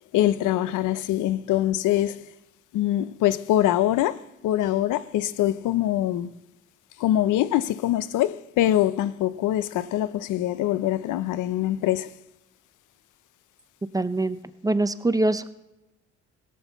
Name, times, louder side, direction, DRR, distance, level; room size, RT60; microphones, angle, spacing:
voice 1, 0.1-2.2 2.7-4.2 4.4-6.3 7.0-12.1, left 13 dB, 80° left, 0.5 m, -23 dB
voice 2, 13.9-14.4 14.6-15.5, right 2 dB, 10° right, 0.5 m, -23 dB
16.0 x 6.2 x 7.0 m
cardioid pair, 90°, 30 cm